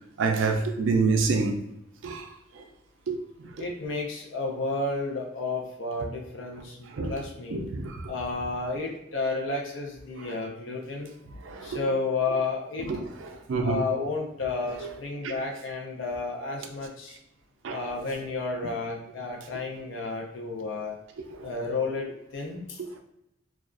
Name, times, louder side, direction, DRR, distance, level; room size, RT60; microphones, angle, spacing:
voice 1, 0.2-1.6 2.0-2.3 3.1-3.2 6.9-7.2 7.5-8.0 11.4-11.8 12.9-13.1 13.5-13.8 17.6-17.8 21.4-21.5, right 4 dB, 75° right, 0.4 m, -26 dB
voice 2, 3.6-7.6 8.1-11.1 11.6-12.9 13.6-17.2 17.7-21.0 21.4-22.8, left 3 dB, 75° left, 0.5 m, -31 dB
2.3 x 2.2 x 2.4 m
head